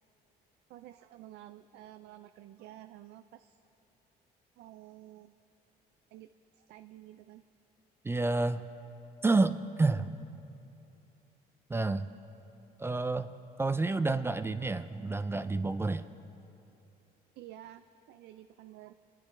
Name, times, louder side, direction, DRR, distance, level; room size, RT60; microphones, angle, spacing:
voice 1, 0.7-3.6 4.6-5.3 6.1-7.4 17.4-18.9, right 13 dB, 75° right, 10 dB, 0.4 m, -51 dB
voice 2, 8.0-8.6 9.2-10.1 11.7-12.1 12.8-13.3 13.6-16.1, right 3 dB, 15° right, 11 dB, 0.4 m, -29 dB
26.5 x 10.0 x 3.3 m, 2.8 s
cardioid pair, 110°, 17 cm